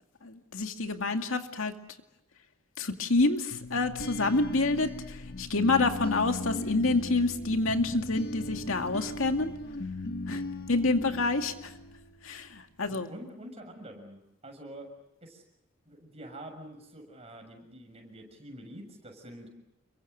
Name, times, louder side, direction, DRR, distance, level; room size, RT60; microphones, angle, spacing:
voice 1, 0.2-1.7 2.8-9.5 10.3-10.4 10.7-11.7 12.2-13.1, left 3 dB, 75° left, 5 dB, 2.2 m, -28 dB
sound 1, 3.5-12.2, left 2 dB, 50° left, 1.4 m, -38 dB
voice 2, 12.9-14.9 15.2-15.4 15.9-19.5, right 1 dB, 30° right, 3 dB, 6.8 m, -46 dB
29.5 x 23.5 x 6.8 m, 0.85 s
head